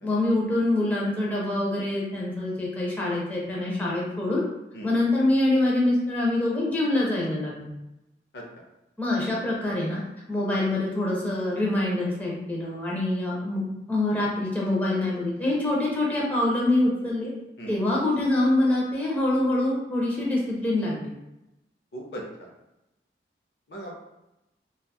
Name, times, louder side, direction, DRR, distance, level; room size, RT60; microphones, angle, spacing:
voice 1, 0.0-4.4 4.8-7.7 9.0-10.0 10.3-17.3 17.7-21.1, left 1 dB, 10° left, -5 dB, 0.5 m, -25 dB
voice 2, 21.9-22.5 23.7-24.0, equal, 70° left, 0 dB, 0.5 m, -38 dB
2.7 x 2.3 x 2.2 m, 0.93 s
head